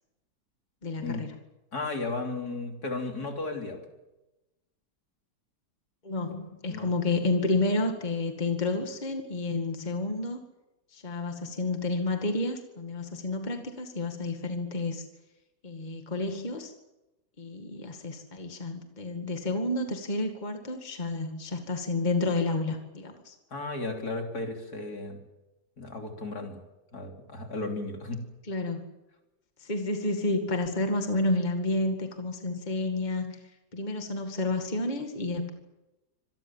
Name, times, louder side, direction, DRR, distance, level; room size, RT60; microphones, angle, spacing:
voice 1, 0.8-1.4 6.0-10.4 10.9-15.1 15.6-16.7 17.4-23.4 28.5-28.9 29.6-33.4 33.7-35.5, left 2 dB, 25° left, 5 dB, 2.2 m, -30 dB
voice 2, 1.7-3.8 6.7-6.9 23.5-25.2 25.8-26.6 26.9-28.2, left 3 dB, 60° left, 3 dB, 3.9 m, -34 dB
25.5 x 19.0 x 7.4 m, 1.0 s
omnidirectional pair, 1.8 m